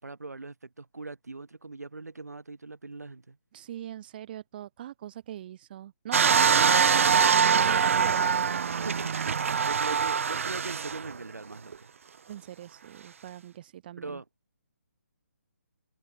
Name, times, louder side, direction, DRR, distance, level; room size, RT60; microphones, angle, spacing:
voice 1, 0.0-3.4 8.8-11.9 14.0-14.2, right 3 dB, 80° right, 2.8 m, -40 dB
voice 2, 3.5-8.3 12.3-14.2, right 11 dB, 35° right, 3.2 m, -40 dB
sound 1, 6.1-11.1 11.7-11.8, right 6 dB, 55° right, 0.8 m, -23 dB
figure-of-eight pair, 150°, 9 cm